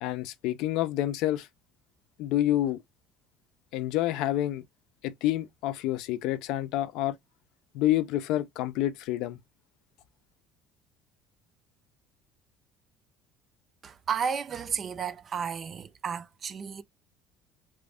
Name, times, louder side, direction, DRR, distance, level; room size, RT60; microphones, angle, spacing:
voice 1, 0.0-1.5 2.2-2.8 3.7-4.6 5.0-7.2 7.7-9.4, left 14 dB, 70° left, 0.5 m, -28 dB
voice 2, 13.8-16.8, right 7 dB, 35° right, 0.4 m, -33 dB
3.0 x 2.5 x 3.4 m
cardioid pair, 130°, 0 cm